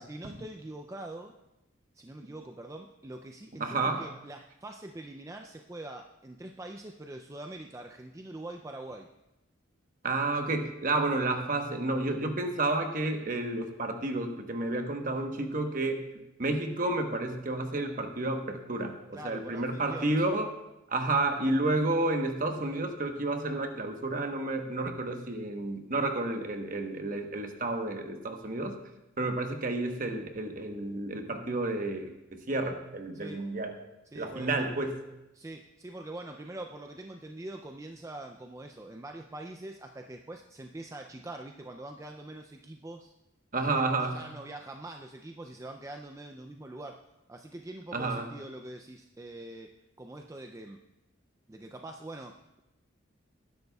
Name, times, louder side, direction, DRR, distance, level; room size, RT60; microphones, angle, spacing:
voice 1, 0.0-1.4 1.9-9.1 19.1-20.2 33.1-33.4 34.1-34.7 35.3-43.1 43.7-50.8 51.5-52.6, right 1 dB, 15° right, 4 dB, 0.3 m, -44 dB
voice 2, 3.6-4.0 10.0-16.1 16.4-20.5 20.9-28.8 29.2-33.7 34.1-35.0 43.5-44.3 47.9-48.3, right 2 dB, 40° right, 4 dB, 1.1 m, -31 dB
19.0 x 10.5 x 2.3 m, 0.94 s
head